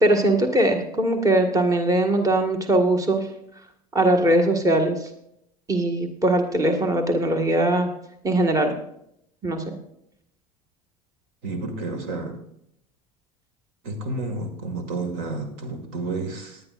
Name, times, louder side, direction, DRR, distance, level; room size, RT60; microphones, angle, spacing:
voice 1, 0.0-3.3 3.9-5.1 5.7-7.9 8.2-8.7 9.4-9.8, right 1 dB, 20° right, 4 dB, 1.7 m, -21 dB
voice 2, 11.4-12.4 13.8-16.6, right 2 dB, 60° right, 7 dB, 2.1 m, -30 dB
18.5 x 11.5 x 2.5 m, 0.75 s
hypercardioid pair, 80°, 19 cm